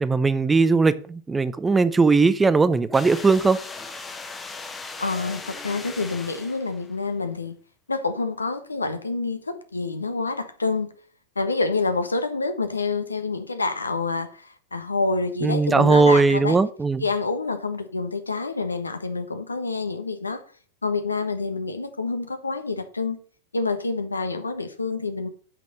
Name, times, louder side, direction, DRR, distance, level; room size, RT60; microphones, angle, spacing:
voice 1, 0.0-3.6 15.4-17.0, right 4 dB, 10° right, 0.5 m, -19 dB
sound 1, 2.9-7.0, left 3 dB, 15° left, 1.1 m, -38 dB
voice 2, 5.0-7.5 7.9-10.9 11.4-16.6 17.0-20.4 20.8-23.2 23.5-25.3, left 3 dB, 80° left, 1.1 m, -27 dB
8.2 x 6.0 x 6.4 m
figure-of-eight pair, 90°, 0 cm